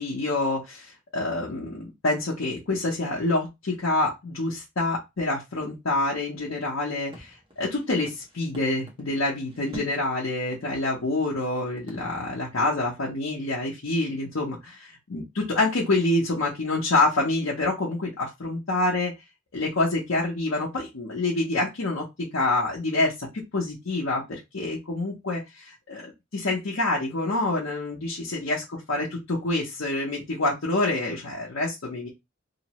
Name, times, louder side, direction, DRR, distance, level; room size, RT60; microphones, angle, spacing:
voice 1, 0.0-19.1 19.5-32.1, left 2 dB, 85° left, -4 dB, 0.8 m, -27 dB
sound 1, 7.1-9.1 9.3-10.1 10.5-10.6 11.0-11.1 11.4-11.5 11.8-12.1, right 1 dB, 25° right, 0.6 m, -45 dB
2.8 x 2.0 x 2.8 m, 0.21 s
head